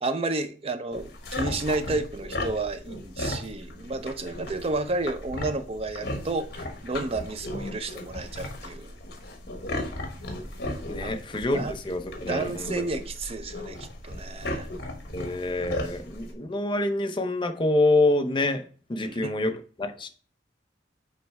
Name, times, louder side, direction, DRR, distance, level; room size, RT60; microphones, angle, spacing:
voice 1, 0.0-8.9 11.0-11.2 11.5-11.7 12.3-14.7 19.0-19.3, right 2 dB, 35° right, 0.5 m, -31 dB
sound 1, 0.9-16.3, left 1 dB, 60° left, 1.2 m, -36 dB
voice 2, 10.9-12.8 15.1-18.6 18.9-19.5 19.8-20.1, left 2 dB, 25° left, 0.6 m, -26 dB
7.4 x 3.2 x 4.6 m
head